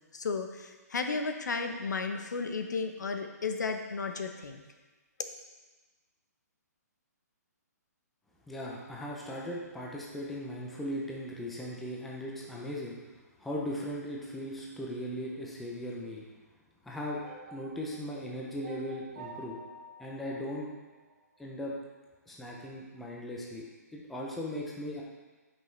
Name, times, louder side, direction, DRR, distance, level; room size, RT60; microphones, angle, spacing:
voice 1, 0.1-4.6, left 4 dB, 80° left, 5 dB, 0.8 m, -34 dB
voice 2, 8.5-13.0 13.4-16.2 16.8-17.2 17.5-19.6 20.0-20.7 21.4-21.7 22.3-23.7 23.9-25.0, equal, ahead, -4 dB, 0.4 m, -38 dB
sound 1, 17.2-21.4, right 2 dB, 15° right, 1.6 m, -50 dB
8.8 x 5.5 x 3.1 m, 1.2 s
hypercardioid pair, 170°, 9 cm